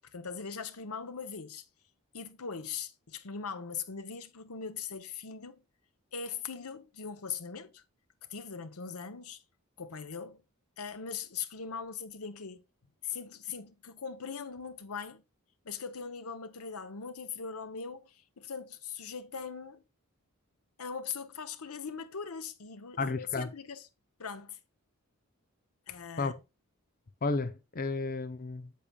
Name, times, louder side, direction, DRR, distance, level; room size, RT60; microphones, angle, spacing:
voice 1, 0.0-1.6 2.1-5.6 6.1-7.8 8.3-9.4 9.8-10.4 10.8-12.6 13.0-15.2 15.6-19.8 20.8-23.8 24.2-24.6 25.9-26.4, left 6 dB, 90° left, 0.9 m, -40 dB
voice 2, 23.0-23.5 26.2-26.3 27.2-28.7, left 3 dB, 40° left, 0.6 m, -32 dB
8.6 x 7.3 x 2.3 m
head